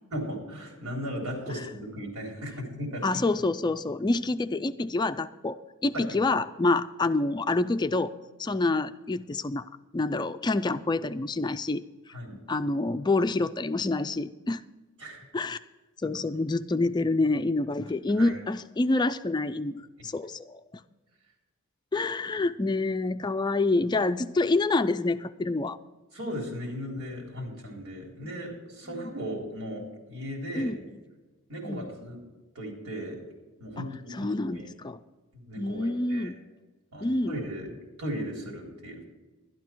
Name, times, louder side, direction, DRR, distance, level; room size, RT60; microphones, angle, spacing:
voice 1, 0.1-3.2 5.9-6.2 12.1-12.4 15.0-15.3 16.0-16.1 18.2-18.3 26.1-30.7 31.5-32.2 32.6-33.2 33.6-34.6 35.3-36.3 36.9-37.7 38.0-39.0, equal, 85° right, 0 dB, 3.8 m, -37 dB
voice 2, 3.0-5.6 5.8-8.1 8.4-9.7 9.9-11.8 12.5-14.6 15.3-15.6 16.0-20.6 21.9-25.8 30.6-31.0 31.6-31.9 33.8-35.0 35.6-36.4 37.0-37.4, left 2 dB, 20° left, 10 dB, 0.3 m, -27 dB
12.0 x 12.0 x 4.6 m, 1.2 s
head